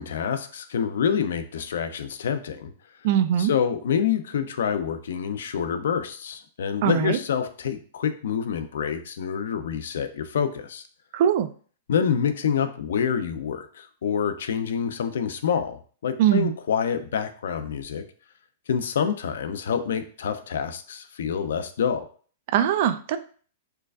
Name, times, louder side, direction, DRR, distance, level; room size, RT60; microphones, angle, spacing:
voice 1, 0.0-2.7 3.4-10.8 11.9-18.0 18.7-22.1, left 7 dB, 80° left, 9 dB, 0.4 m, -27 dB
voice 2, 3.0-3.5 6.8-7.2 11.1-11.5 16.2-16.5 22.5-23.2, right 10 dB, 50° right, 11 dB, 0.3 m, -21 dB
4.4 x 2.4 x 2.3 m, 0.43 s
hypercardioid pair, 150°, 0 cm